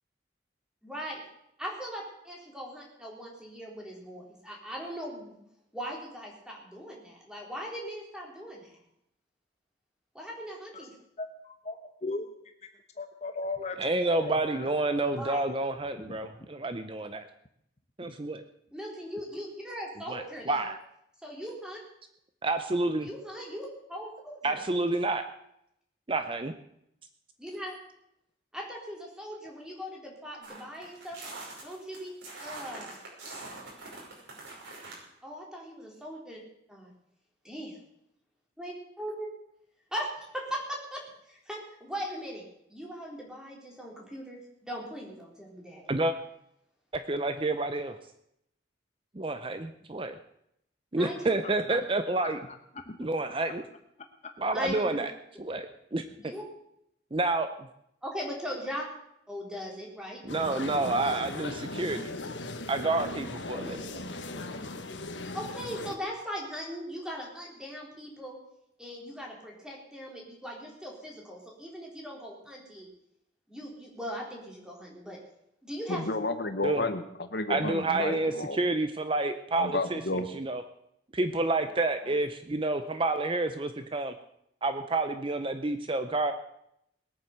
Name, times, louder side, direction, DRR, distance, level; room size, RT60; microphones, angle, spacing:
voice 1, 0.8-1.2 1.6-5.4 5.7-8.8 10.1-10.9 15.1-15.5 18.7-20.7 21.2-21.8 23.0-24.6 27.4-27.8 28.5-31.2 31.6-32.9 35.2-36.4 36.7-36.9 37.4-37.8 38.6-39.3 39.9-42.4 42.7-45.9 51.0-51.2 54.5-55.0 56.2-56.4 58.0-58.8 59.3-60.2 65.3-68.4 68.8-72.9 73.5-75.2 75.6-76.0 82.0-82.2, equal, 5° right, -2 dB, 3.8 m, -39 dB
voice 2, 11.2-12.3 13.0-14.7 16.1-16.2 51.4-51.8 52.2-52.3 52.8-53.0, left 3 dB, 35° left, 6 dB, 1.0 m, -37 dB
voice 3, 13.8-17.3 18.0-18.4 20.1-20.8 22.4-23.1 24.4-25.2 26.1-26.5 45.9-46.1 46.9-48.0 49.1-50.2 50.9-52.4 53.0-53.7 54.4-55.1 55.4-56.0 57.1-57.7 60.2-62.1 62.7-63.8 76.6-76.8 77.5-80.6 81.1-84.1 84.6-86.3, right 2 dB, 30° right, 9 dB, 0.7 m, -29 dB
sound 1, 30.4-35.0, right 3 dB, 90° right, 5.7 m, -44 dB
sound 2, 60.3-66.0, left 2 dB, 85° left, 1.4 m, -38 dB
voice 4, 75.9-78.6 79.6-80.3, left 2 dB, 60° left, 9 dB, 1.1 m, -31 dB
20.0 x 9.1 x 6.6 m, 0.77 s
head